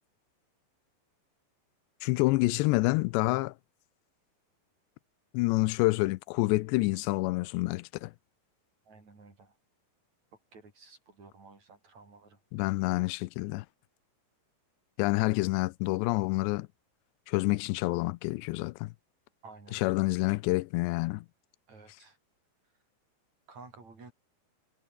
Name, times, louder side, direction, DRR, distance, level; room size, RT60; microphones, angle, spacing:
voice 1, 2.0-3.5 5.3-8.1 12.5-13.7 15.0-16.7 17.3-18.9 19.7-21.3, left 22 dB, 80° left, 2.7 m, -28 dB
voice 2, 8.9-9.5 10.5-12.4 19.4-20.1 21.7-22.2 23.5-24.1, right 4 dB, 40° right, 8.1 m, -53 dB
omnidirectional pair, 5.1 m